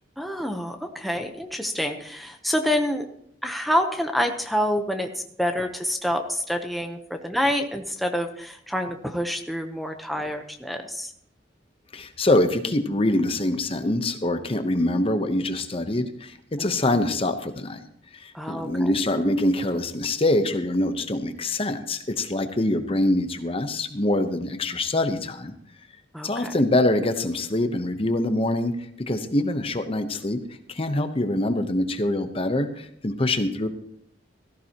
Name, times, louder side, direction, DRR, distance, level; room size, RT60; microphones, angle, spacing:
voice 1, 0.2-3.0 3.4-11.1 16.6-17.0 18.3-18.9 26.1-26.5, equal, ahead, 4 dB, 0.8 m, -27 dB
voice 2, 11.9-17.8 18.1-25.5 26.2-30.4 30.7-33.7, left 1 dB, 30° left, 8 dB, 0.9 m, -24 dB
17.0 x 14.5 x 2.9 m, 0.69 s
head